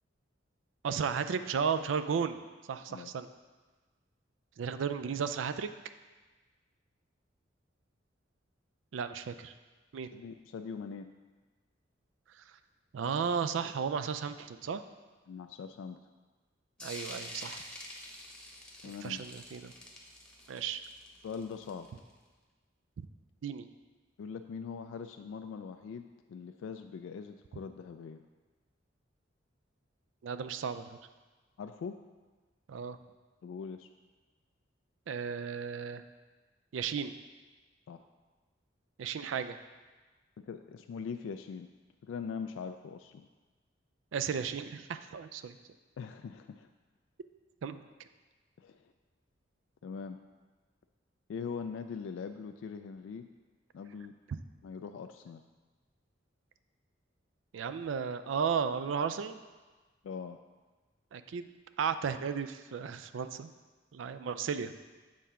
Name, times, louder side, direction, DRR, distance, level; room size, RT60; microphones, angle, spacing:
voice 1, 0.8-2.4 2.7-3.3 4.6-5.7 8.9-9.5 9.9-10.1 12.9-14.8 16.8-17.7 19.0-19.7 20.5-20.8 23.0-23.1 23.4-23.7 30.2-31.0 32.7-33.0 35.1-36.0 36.7-37.1 39.0-39.6 44.1-45.6 47.6-47.9 54.3-54.4 57.5-59.4 61.1-61.5 61.8-63.5 63.9-64.7, right 6 dB, 80° right, 10 dB, 0.4 m, -34 dB
voice 2, 10.1-11.1 15.3-16.1 18.8-19.2 21.2-21.9 24.2-28.2 31.6-32.0 33.4-33.9 37.9-38.0 40.4-41.7 42.0-43.3 46.0-46.7 48.6-48.9 49.8-50.2 51.3-53.3 53.7-54.2 54.6-55.4 60.0-60.4, left 6 dB, 90° left, 7 dB, 0.3 m, -42 dB
sound 1, 16.8-22.1, left 1 dB, 5° left, 0.8 m, -47 dB
7.4 x 3.6 x 5.6 m, 1.3 s
head